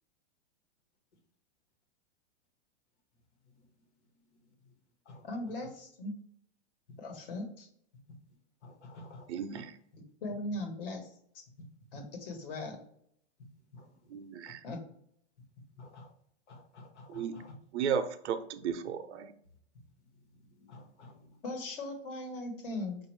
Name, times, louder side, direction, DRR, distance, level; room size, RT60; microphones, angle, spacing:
voice 1, 5.2-6.1 7.0-7.7 10.2-11.1 11.3-11.4 11.9-12.8 14.6-14.8 21.4-23.0, left 2 dB, 55° left, 4 dB, 1.3 m, -38 dB
voice 2, 8.6-9.3 9.5-9.6 13.7-13.8 15.8-16.1 16.5-17.5 20.6-21.3, left 2 dB, 90° left, 3 dB, 1.4 m, -51 dB
voice 3, 9.3-9.8 14.1-14.6 17.1-17.4 17.7-19.3, right 7 dB, 90° right, 9 dB, 0.7 m, -34 dB
5.3 x 2.6 x 3.1 m, 0.66 s
supercardioid pair, 170°, 34 cm